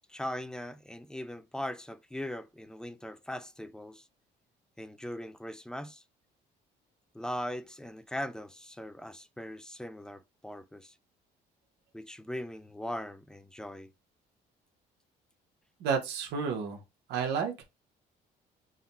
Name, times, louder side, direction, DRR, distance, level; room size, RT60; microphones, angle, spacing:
voice 1, 0.0-4.0 4.8-6.0 7.1-10.9 11.9-13.9, left 1 dB, 5° left, 0.4 m, -40 dB
voice 2, 15.8-16.8 17.1-17.6, right 6 dB, 80° right, 1.2 m, -31 dB
3.7 x 2.3 x 4.2 m
cardioid pair, 110°, 17 cm